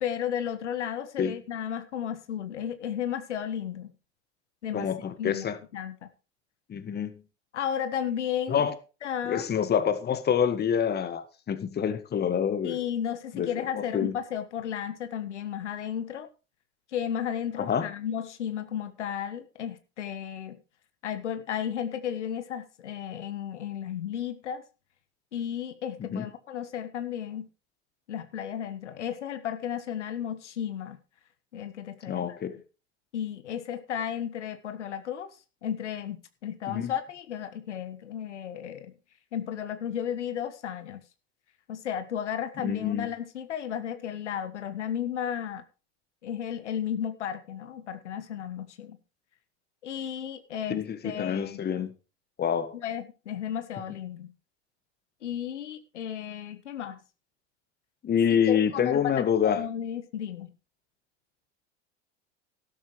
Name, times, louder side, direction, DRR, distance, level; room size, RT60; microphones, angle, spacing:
voice 1, 0.0-3.9 4.6-4.9 5.2-6.1 7.5-8.6 9.0-9.5 12.6-16.3 16.9-20.6 21.0-24.6 25.3-27.5 28.1-31.0 31.5-32.4 33.1-35.3 35.6-38.9 39.3-41.0 41.7-45.6 46.2-49.0 49.8-51.9 52.7-54.3 55.2-57.0 58.5-60.5, left 9 dB, 85° left, 1.3 m, -33 dB
voice 2, 4.7-5.6 6.7-7.1 8.5-8.7 9.3-12.8 13.4-13.5 13.7-14.1 17.6-17.9 26.0-26.3 32.1-32.6 36.7-36.9 42.6-43.1 50.7-51.9 52.4-52.8 58.0-59.6, left 8 dB, 30° left, 1.7 m, -27 dB
12.5 x 12.5 x 3.2 m
hypercardioid pair, 90°, 34 cm